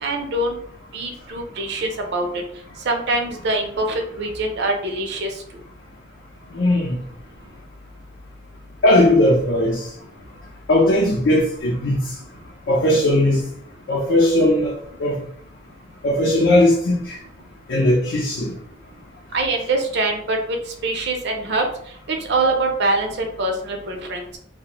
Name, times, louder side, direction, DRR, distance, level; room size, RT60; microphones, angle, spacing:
voice 1, 0.0-0.5 0.9-2.3 2.8-5.4 19.3-20.6 20.8-21.7 22.1-24.4, right 2 dB, 65° right, 0.5 m, -24 dB
voice 2, 6.5-7.0 8.8-9.8 10.7-12.0 12.7-13.4 13.9-15.2 16.0-17.2 17.7-18.5, left 1 dB, 80° left, 0.5 m, -18 dB
2.5 x 2.0 x 2.9 m
head